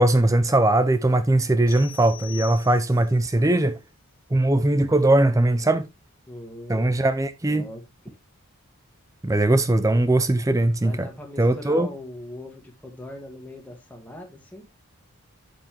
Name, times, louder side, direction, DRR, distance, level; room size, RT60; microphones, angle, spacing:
voice 1, 0.0-3.8 4.3-5.9 6.7-7.7 9.2-11.1 11.4-11.9, right 1 dB, 15° right, 0.5 m, -20 dB
sound 1, 1.7-3.2, left 11 dB, 55° left, 1.6 m, -42 dB
voice 2, 6.3-7.0 7.5-8.2 10.8-14.6, left 1 dB, 5° left, 1.6 m, -40 dB
8.1 x 8.0 x 2.9 m
head